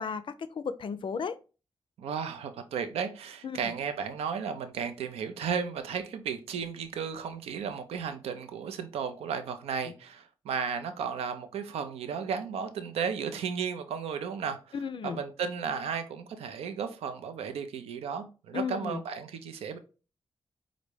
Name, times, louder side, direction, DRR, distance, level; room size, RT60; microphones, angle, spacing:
voice 1, 0.0-1.4 3.4-3.7 14.7-15.2 18.5-19.0, left 6 dB, 55° left, 0.4 m, -34 dB
voice 2, 2.0-14.7 15.0-19.8, right 6 dB, 85° right, 0.5 m, -34 dB
4.1 x 2.5 x 3.1 m
supercardioid pair, 40°, 10 cm